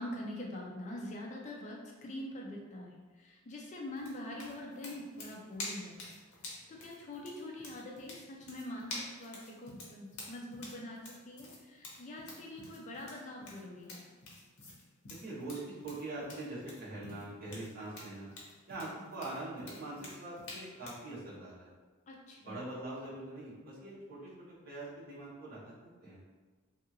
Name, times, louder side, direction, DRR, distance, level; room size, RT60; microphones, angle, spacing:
voice 1, 0.0-6.1 6.5-14.0 22.1-22.6, left 1 dB, 35° left, -1 dB, 0.4 m, -44 dB
sound 1, 4.0-21.1, left 2 dB, 75° left, 0.7 m, -48 dB
voice 2, 15.2-18.3 18.7-21.7 22.4-24.3 24.6-26.2, right 2 dB, 45° right, -9 dB, 1.1 m, -43 dB
2.7 x 2.4 x 2.8 m, 1.4 s
head